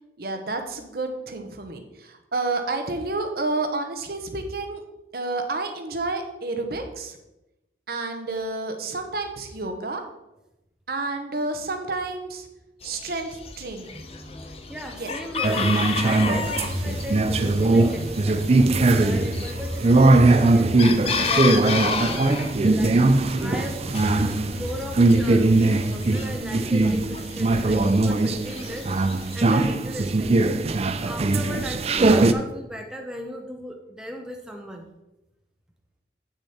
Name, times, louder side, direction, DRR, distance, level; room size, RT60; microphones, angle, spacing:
voice 1, 0.2-1.8 2.3-4.8 5.1-7.1 7.9-10.0 10.9-12.4 12.8-13.3 13.6-13.9 15.0-15.1, right 3 dB, 60° right, 5 dB, 1.0 m, -29 dB
Chicken rooster, 12.8-29.4, left 5 dB, 35° left, 0.7 m, -33 dB
sound 1, 13.9-26.4, left 1 dB, 85° left, 3.3 m, -36 dB
voice 2, 14.7-20.8 21.3-23.0 23.4-23.8 24.1-28.9 29.3-30.6 31.0-34.8, equal, 5° right, 2 dB, 0.8 m, -37 dB
sound 2, 15.4-32.3, right 2 dB, 35° right, 0.4 m, -20 dB
8.3 x 6.4 x 4.2 m, 0.94 s
head